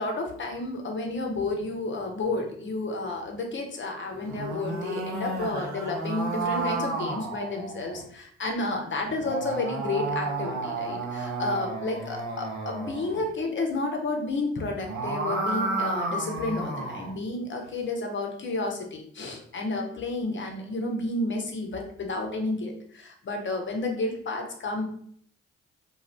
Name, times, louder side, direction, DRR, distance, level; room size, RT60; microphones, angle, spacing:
voice 1, 0.0-24.8, left 2 dB, 35° left, 2 dB, 0.8 m, -31 dB
sound 1, 4.2-8.0 9.0-13.2 14.7-17.2, right 3 dB, 60° right, 0.8 m, -32 dB
2.5 x 2.4 x 3.2 m, 0.62 s
figure-of-eight pair, 40°, 34 cm